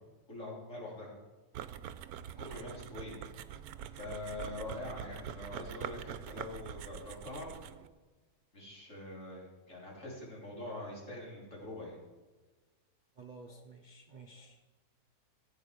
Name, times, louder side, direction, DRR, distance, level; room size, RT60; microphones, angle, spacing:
voice 1, 0.3-1.1 2.2-3.3 3.9-7.5 8.5-12.0, left 1 dB, 50° left, -3 dB, 3.7 m, -44 dB
sound 1, 1.5-7.9, right 10 dB, 75° right, 1.1 m, -44 dB
voice 2, 13.2-14.6, right 4 dB, 45° right, 5 dB, 0.6 m, -53 dB
15.5 x 8.3 x 5.1 m, 1.3 s
omnidirectional pair, 1.6 m